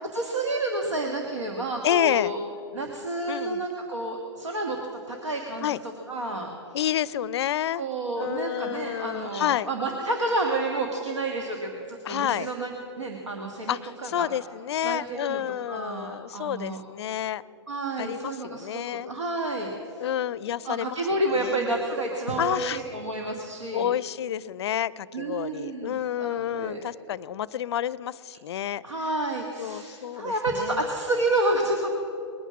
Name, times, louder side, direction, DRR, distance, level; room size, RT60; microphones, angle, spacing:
voice 1, 0.1-2.4 2.7-4.8 5.1-5.8 6.1-6.5 7.8-14.3 14.8-15.4 15.7-16.8 17.7-20.1 20.6-23.9 25.1-26.8 28.8-31.9, right 2 dB, 90° right, 1 dB, 1.5 m, -30 dB
voice 2, 1.8-2.3 3.3-3.6 5.6-5.8 6.7-7.8 8.2-9.7 12.0-12.5 13.7-17.4 18.0-19.1 20.0-21.8 22.4-22.8 23.7-28.8 29.6-30.8, left 11 dB, 65° left, 21 dB, 0.4 m, -29 dB
20.5 x 9.1 x 7.3 m, 2.8 s
hypercardioid pair, 120°, 15 cm